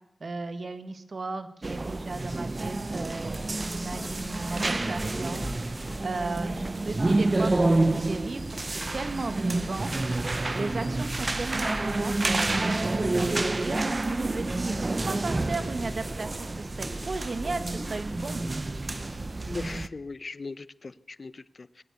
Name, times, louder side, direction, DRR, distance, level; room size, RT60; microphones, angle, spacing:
voice 1, 0.2-5.4 6.0-8.4 8.9-9.9 10.5-13.8 14.2-14.7 15.0-18.4, right 3 dB, 60° right, 10 dB, 1.9 m, -35 dB
sound 1, 1.6-19.9, right 2 dB, 35° right, 0.8 m, -29 dB
sound 2, 3.8-6.5 7.0-7.1, left 1 dB, 15° left, 2.7 m, -44 dB
voice 2, 19.5-21.8, left 3 dB, 55° left, 17 dB, 0.8 m, -39 dB
21.0 x 16.5 x 8.3 m, 0.75 s
wide cardioid pair, 75°, 0 cm